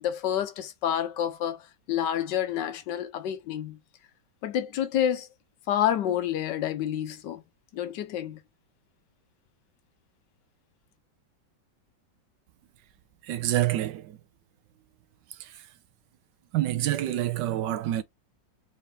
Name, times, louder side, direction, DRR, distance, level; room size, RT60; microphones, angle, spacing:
voice 1, 0.0-3.8 4.4-5.3 5.7-7.4 7.7-8.4, left 10 dB, 75° left, 1.3 m, -28 dB
voice 2, 13.2-14.2 15.4-15.6 16.5-18.0, right 13 dB, 70° right, 1.2 m, -27 dB
4.3 x 2.7 x 3.3 m
omnidirectional pair, 2.1 m